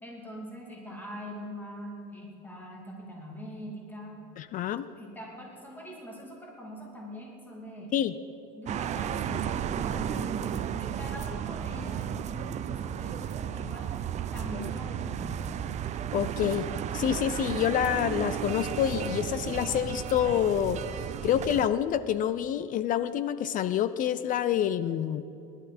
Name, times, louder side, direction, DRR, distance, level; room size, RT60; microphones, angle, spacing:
voice 1, 0.0-4.2 4.9-7.9 8.5-13.9 14.3-15.5, equal, 10° left, -2 dB, 2.8 m, -43 dB
voice 2, 4.4-4.9 7.9-8.1 16.1-16.7 16.9-20.8 21.2-25.3, left 10 dB, 45° left, 14 dB, 0.5 m, -27 dB
sound 1, 8.7-21.7, right 9 dB, 35° right, 0.5 m, -33 dB
20.0 x 11.5 x 4.3 m, 2.8 s
cardioid pair, 130°, 20 cm